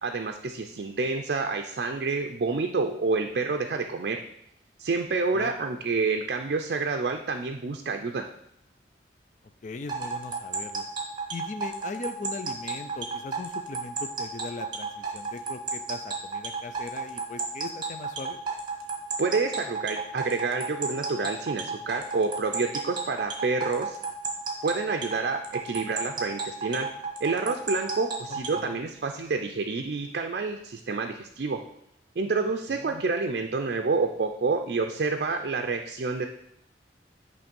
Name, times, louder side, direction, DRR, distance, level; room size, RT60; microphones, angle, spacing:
voice 1, 0.0-4.2 4.8-8.3 19.2-24.0 24.6-25.4 25.6-26.9 27.2-31.6 32.2-36.3, right 4 dB, 60° right, 4 dB, 0.4 m, -28 dB
voice 2, 9.6-10.8 11.3-18.4 28.3-28.8 32.7-33.0, left 3 dB, 45° left, 9 dB, 0.4 m, -39 dB
sound 1, 9.9-28.6, right 4 dB, 25° right, 1.2 m, -32 dB
8.6 x 3.2 x 5.2 m, 0.77 s
head